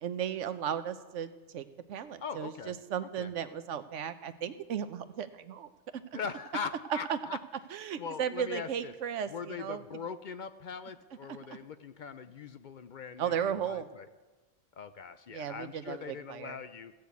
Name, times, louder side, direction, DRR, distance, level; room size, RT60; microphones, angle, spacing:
voice 1, 0.0-5.7 6.9-7.2 7.7-9.8 11.3-11.4 13.2-13.9 15.3-16.6, right 8 dB, 90° right, 11 dB, 1.1 m, -35 dB
voice 2, 2.2-2.7 3.0-3.3 6.1-7.4 8.0-8.9 9.3-14.1 14.8-16.9, left 6 dB, 55° left, 11 dB, 0.6 m, -41 dB
15.5 x 6.7 x 8.2 m, 1.2 s
omnidirectional pair, 1.2 m